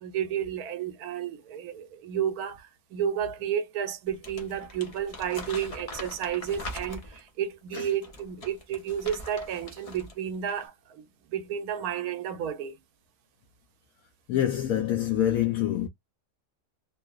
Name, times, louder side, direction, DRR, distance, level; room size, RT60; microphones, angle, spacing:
voice 1, 0.0-12.8, right 9 dB, 80° right, 1.1 m, -32 dB
Crumpling crinkling, 4.1-7.3 7.9-10.2 10.4-10.7, left 1 dB, 45° left, 0.5 m, -42 dB
voice 2, 14.3-15.9, left 11 dB, 75° left, 0.9 m, -26 dB
2.9 x 2.0 x 2.3 m
omnidirectional pair, 1.6 m